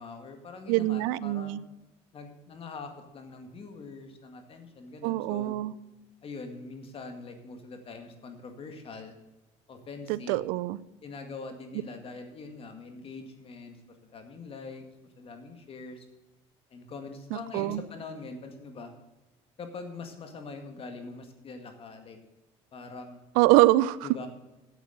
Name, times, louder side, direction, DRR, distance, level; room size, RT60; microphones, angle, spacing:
voice 1, 0.0-1.6 2.1-5.5 6.2-9.2 9.7-10.4 11.0-13.8 14.1-14.8 15.2-16.1 16.7-18.9 19.6-22.2 22.7-23.2 24.0-24.3, left 4 dB, 45° left, 6 dB, 2.1 m, -43 dB
voice 2, 0.7-1.6 5.0-5.7 10.1-10.8 17.3-17.8 23.4-24.1, right 17 dB, 85° right, 19 dB, 0.5 m, -24 dB
8.3 x 8.2 x 7.9 m, 1.0 s
supercardioid pair, 90°, 14 cm